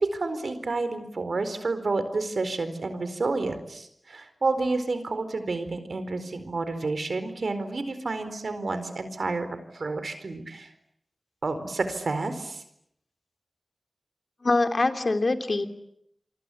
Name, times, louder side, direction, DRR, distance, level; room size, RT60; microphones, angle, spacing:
voice 1, 0.0-9.5 9.7-10.7 11.4-12.6, right 3 dB, 75° right, 10 dB, 4.3 m, -30 dB
voice 2, 14.4-15.7, left 2 dB, 55° left, 7 dB, 2.8 m, -24 dB
28.5 x 24.5 x 8.5 m, 0.75 s
cardioid pair, 45°, 0 cm